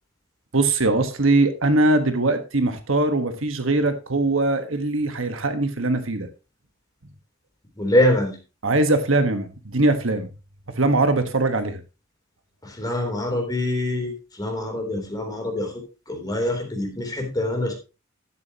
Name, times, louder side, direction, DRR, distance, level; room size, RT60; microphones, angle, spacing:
voice 1, 0.5-6.3 8.6-10.3 10.7-11.8, right 2 dB, 70° right, 8 dB, 1.4 m, -21 dB
voice 2, 7.8-8.4 12.6-15.7 16.1-17.7, left 1 dB, 20° left, 3 dB, 3.5 m, -24 dB
11.5 x 10.5 x 3.0 m, 0.30 s
head